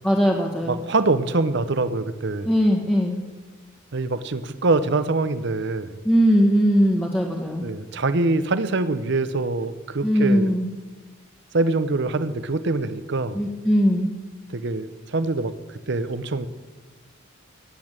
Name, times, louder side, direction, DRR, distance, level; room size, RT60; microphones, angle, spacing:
voice 1, 0.0-0.8 2.4-3.2 6.0-7.7 10.0-10.7 13.3-14.1, equal, 10° left, -1 dB, 1.5 m, -20 dB
voice 2, 0.6-2.5 3.9-6.0 7.6-10.5 11.5-13.5 14.5-15.5 15.9-16.5, right 3 dB, 60° right, 12 dB, 0.8 m, -24 dB
17.0 x 8.5 x 8.8 m, 1.3 s
head